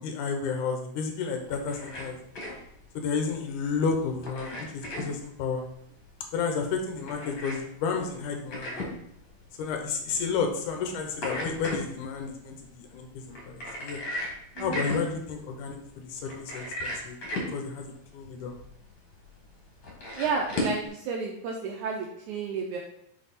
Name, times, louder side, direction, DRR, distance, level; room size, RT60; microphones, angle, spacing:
voice 1, 0.0-2.2 2.9-5.7 6.3-8.8 9.6-14.0 14.6-15.8 16.0-17.2 17.5-18.5, left 5 dB, 70° left, 4 dB, 2.1 m, -31 dB
sound 1, 1.4-20.9, left 1 dB, 45° left, 1.8 m, -38 dB
voice 2, 14.6-15.0 20.2-22.8, right 5 dB, 85° right, 0 dB, 1.7 m, -31 dB
5.8 x 5.5 x 4.2 m, 0.76 s
omnidirectional pair, 4.3 m